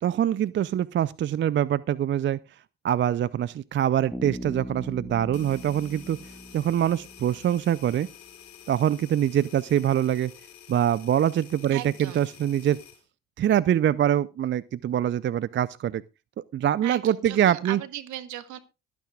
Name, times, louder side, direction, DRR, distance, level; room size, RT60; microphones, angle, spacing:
voice 1, 0.0-2.4 2.8-6.2 6.5-8.1 8.7-10.3 10.7-12.8 13.4-16.0 16.5-17.8, right 10 dB, 35° right, 0.5 m, -24 dB
Bass guitar, 4.1-7.8, equal, ahead, 1.4 m, -40 dB
sound 1, 5.3-13.0, left 10 dB, 60° left, 5.4 m, -49 dB
voice 2, 11.7-12.2 16.8-18.6, right 12 dB, 65° right, 1.7 m, -37 dB
22.5 x 9.5 x 2.4 m
hypercardioid pair, 55°, 32 cm